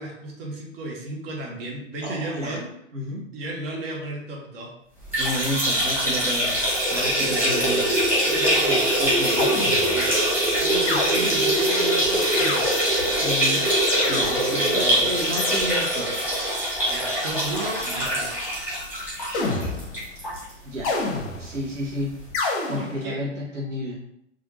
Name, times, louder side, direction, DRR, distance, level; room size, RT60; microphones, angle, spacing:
voice 1, 0.0-2.7 3.3-4.7 7.6-7.8 9.2-9.5 9.9-10.1 10.6-12.6 14.5-15.2 16.9-18.3 22.7-23.2, right 2 dB, 50° right, -1 dB, 1.0 m, -34 dB
voice 2, 2.0-2.6 2.9-3.3 5.2-6.7 6.9-9.3 13.2-13.7 14.1-16.1 20.6-20.9 21.4-22.1 22.7-24.0, equal, 70° right, -3 dB, 0.9 m, -31 dB
sound 1, 5.0-20.4 20.8-20.9 21.2-21.3 22.3-22.4, right 1 dB, 5° right, 1.1 m, -23 dB
sound 2, 9.4-10.2 10.9-11.6 12.4-13.1 13.9-14.7 15.4-16.1 19.3-20.1 20.8-21.6 22.3-23.1, left 3 dB, 30° left, 0.6 m, -29 dB
3.3 x 2.4 x 3.0 m, 0.76 s
figure-of-eight pair, 105°, 38 cm